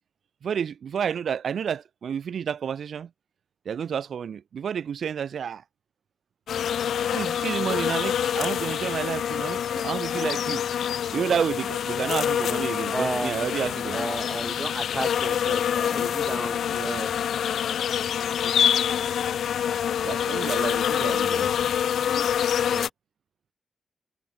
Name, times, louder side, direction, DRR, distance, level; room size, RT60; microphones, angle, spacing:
voice 1, 0.4-3.1 3.6-5.6 7.1-10.6 11.1-14.0 20.0-21.5, right 7 dB, 70° right, 1.6 m, -30 dB
sound 1, 6.5-22.9, left 9 dB, 85° left, 3.5 m, -26 dB
voice 2, 12.9-13.4 13.9-17.1 22.7-22.9, right 2 dB, 15° right, 5.0 m, -32 dB
wide cardioid pair, 115°, 0 cm